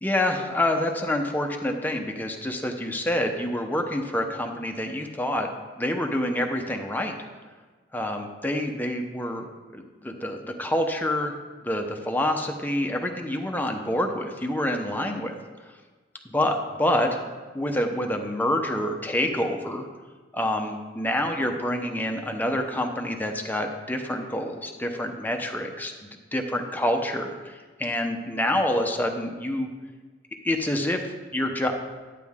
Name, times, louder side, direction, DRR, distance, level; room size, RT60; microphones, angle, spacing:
voice 1, 0.0-7.1 7.9-9.5 9.7-11.3 11.6-15.8 16.3-17.2 17.5-19.9 20.3-25.9 26.3-29.7 30.4-31.7, left 1 dB, 10° left, 3 dB, 0.8 m, -27 dB
11.5 x 8.4 x 3.6 m, 1.3 s
head